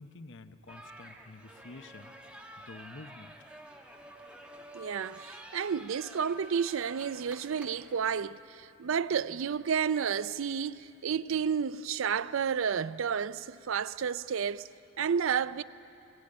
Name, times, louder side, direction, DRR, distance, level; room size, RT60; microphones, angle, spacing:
voice 1, 0.0-2.1 2.6-3.4, left 3 dB, 60° left, 0.8 m, -49 dB
sound 1, 0.7-8.0, right 1 dB, 5° right, 1.3 m, -50 dB
voice 2, 4.7-14.7 15.0-15.6, right 7 dB, 65° right, 0.4 m, -31 dB
18.0 x 17.5 x 9.8 m
head